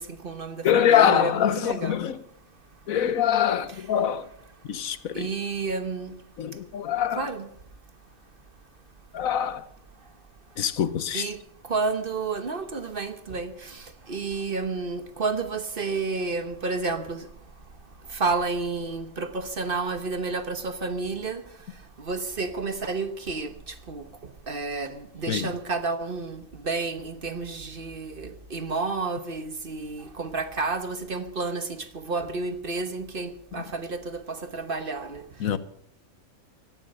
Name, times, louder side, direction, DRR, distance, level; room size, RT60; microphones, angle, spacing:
voice 1, 0.0-2.0 3.7-3.8 5.1-6.1 7.2-7.5 11.1-11.4 11.6-17.3 18.1-21.4 22.0-24.0 24.5-35.2, right 3 dB, 40° right, 1.2 m, -31 dB
voice 2, 0.6-2.2 2.9-4.3 4.7-5.3 6.4-7.3 9.1-9.6 10.6-11.3 25.3-25.5 33.6-33.7 35.4-35.6, left 9 dB, 75° left, 1.3 m, -24 dB
17.0 x 12.0 x 6.5 m
omnidirectional pair, 1.5 m